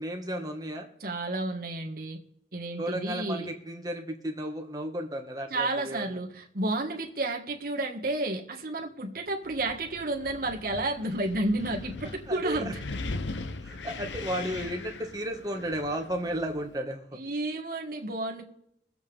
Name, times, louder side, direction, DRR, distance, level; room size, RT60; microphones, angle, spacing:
voice 1, 0.0-0.9 2.8-6.1 12.3-12.7 13.6-17.2, equal, 20° right, 1.5 m, -34 dB
voice 2, 1.0-2.2 2.5-3.5 5.5-12.8 17.1-18.4, right 2 dB, 55° right, 1.7 m, -31 dB
Wind, 9.4-16.8, left 3 dB, 90° left, 0.8 m, -40 dB
22.0 x 8.1 x 3.5 m
head